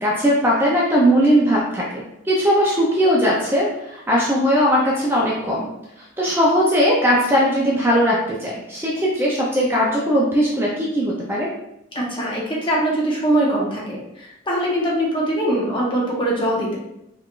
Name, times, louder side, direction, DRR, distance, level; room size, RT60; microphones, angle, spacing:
voice 1, 0.0-5.7 6.2-11.5, equal, 10° right, -5 dB, 0.5 m, -19 dB
voice 2, 11.9-16.8, right 1 dB, 25° left, -4 dB, 0.9 m, -22 dB
3.9 x 3.1 x 2.4 m, 0.83 s
head